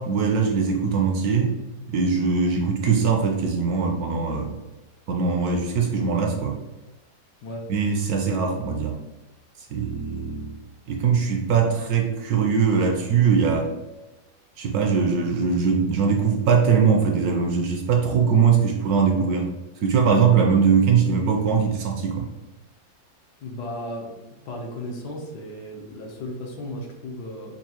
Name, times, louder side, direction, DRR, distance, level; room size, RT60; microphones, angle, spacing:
voice 1, 0.0-1.5 1.9-4.6 5.1-6.6 7.7-9.0 9.7-10.5 10.9-13.7 14.6-19.5 19.8-22.2, right 6 dB, 70° right, 2 dB, 1.0 m, -21 dB
voice 2, 23.4-27.5, left 1 dB, 75° left, 0 dB, 1.3 m, -35 dB
5.6 x 2.3 x 2.8 m, 1.1 s
omnidirectional pair, 1.8 m